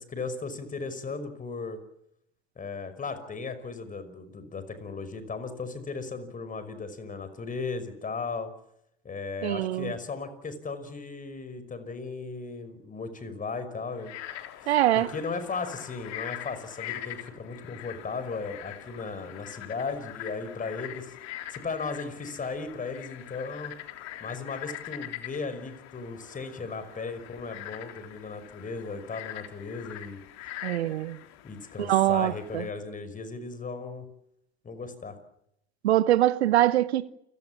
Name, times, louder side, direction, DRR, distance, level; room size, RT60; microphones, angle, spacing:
voice 1, 0.0-1.8 2.6-8.5 9.0-14.1 14.9-21.1 21.5-23.7 24.2-30.2 31.4-34.1 34.6-35.2, left 4 dB, 25° left, 5.6 m, -36 dB
voice 2, 9.4-9.9 14.7-15.1 30.6-31.2 31.8-32.6 35.8-37.1, right 14 dB, 75° right, 1.1 m, -23 dB
Frog, 13.9-32.7, left 13 dB, 55° left, 3.5 m, -43 dB
29.0 x 18.0 x 7.5 m
hypercardioid pair, 80°, 33 cm